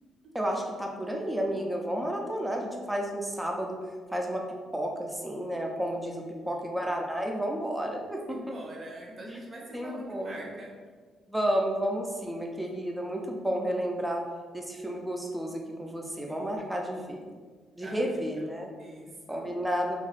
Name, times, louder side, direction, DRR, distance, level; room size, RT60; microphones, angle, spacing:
voice 1, 0.3-3.8 4.1-4.4 4.7-8.4 9.3-9.4 9.7-10.6 11.3-14.2 14.5-17.2 17.8-18.7 19.3-20.0, equal, 10° right, 1 dB, 0.6 m, -31 dB
voice 2, 6.1-6.7 8.3-10.7 16.3-17.2 17.8-18.2 18.8-19.5, right 1 dB, 40° right, -1 dB, 0.9 m, -45 dB
3.0 x 2.5 x 4.1 m, 1.5 s
cardioid pair, 90°, 0 cm